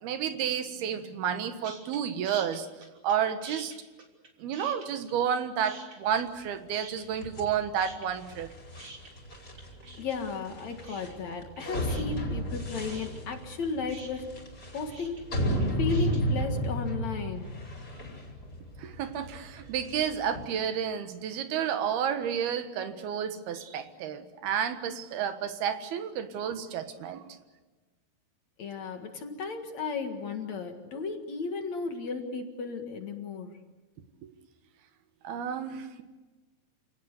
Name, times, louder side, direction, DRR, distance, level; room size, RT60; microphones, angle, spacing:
voice 1, 0.0-2.7 3.0-3.7 4.4-8.5 18.8-27.3 35.2-36.0, right 8 dB, 80° right, 9 dB, 3.4 m, -31 dB
sound 1, 1.6-2.0 2.2-3.2 3.4-5.4 5.6-6.5 6.7-7.5 7.8-16.2, right 3 dB, 35° right, 3.8 m, -47 dB
sound 2, 7.2-20.4, equal, 25° left, 5.4 m, -33 dB
voice 2, 10.0-14.4 14.7-15.2 15.8-17.5 28.6-33.5, left 4 dB, 50° left, 5 dB, 2.7 m, -34 dB
29.0 x 18.0 x 8.3 m, 1.2 s
omnidirectional pair, 4.5 m